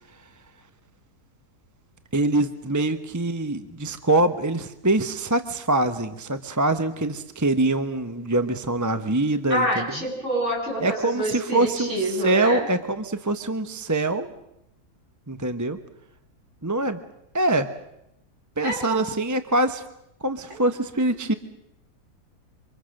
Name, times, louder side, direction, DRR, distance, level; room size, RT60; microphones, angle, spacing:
voice 1, 2.1-9.9 10.8-14.3 15.3-15.8 16.6-17.0 17.3-17.7 18.6-19.8 20.2-21.3, right 2 dB, 15° right, 9 dB, 0.8 m, -24 dB
voice 2, 9.5-12.7 18.6-19.0 20.5-20.6, right 1 dB, 45° right, -2 dB, 8.1 m, -27 dB
27.5 x 25.0 x 6.5 m, 0.83 s
omnidirectional pair, 1.8 m